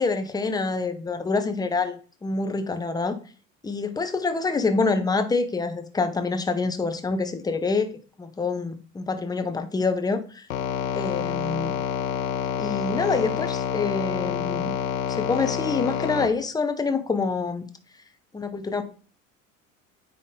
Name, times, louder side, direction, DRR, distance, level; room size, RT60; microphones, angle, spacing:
voice 1, 0.0-3.1 3.6-10.5 10.9-11.7 12.6-14.7 15.1-17.7 18.3-18.8, left 4 dB, 10° left, 8 dB, 0.9 m, -26 dB
sound 1, 10.5-16.3, left 8 dB, 75° left, 0.9 m, -28 dB
9.3 x 3.8 x 3.8 m, 0.38 s
figure-of-eight pair, 70°, 40 cm